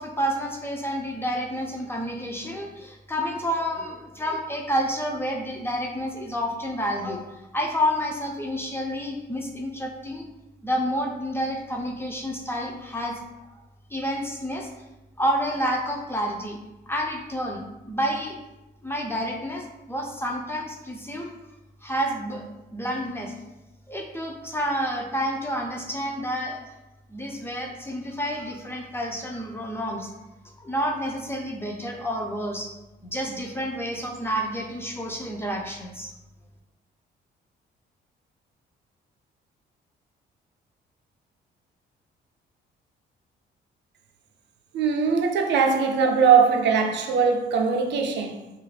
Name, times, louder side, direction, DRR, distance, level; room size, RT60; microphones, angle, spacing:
voice 1, 0.0-7.3 7.5-10.3 10.6-13.2 13.9-14.7 15.2-16.6 16.9-18.4 18.8-21.3 21.8-22.5 22.7-23.3 23.9-26.7 27.1-30.1 30.6-32.7 33.0-36.1, equal, 10° left, 0.4 m, -29 dB
voice 2, 44.7-48.5, right 6 dB, 65° right, 0.4 m, -21 dB
2.3 x 2.0 x 3.2 m
cardioid pair, 90°, 20 cm